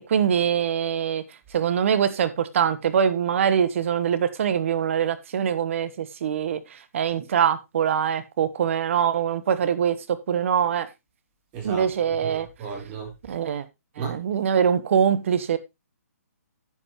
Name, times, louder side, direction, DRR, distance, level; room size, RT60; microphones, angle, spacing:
voice 1, 0.1-1.2 1.5-10.9 11.6-12.5 13.3-13.6 14.0-15.6, right 8 dB, 50° right, 1.2 m, -23 dB
voice 2, 11.5-13.1 14.0-14.2, right 6 dB, 25° right, 4.2 m, -35 dB
10.5 x 8.1 x 3.1 m
hypercardioid pair, 150°, 9 cm